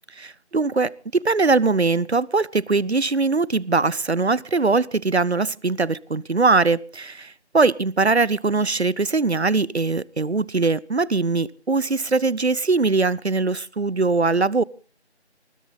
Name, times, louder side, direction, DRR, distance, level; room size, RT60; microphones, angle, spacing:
voice 1, 0.2-14.6, right 3 dB, 70° right, 24 dB, 0.8 m, -21 dB
20.0 x 17.5 x 4.0 m, 0.38 s
figure-of-eight pair, 180°, 34 cm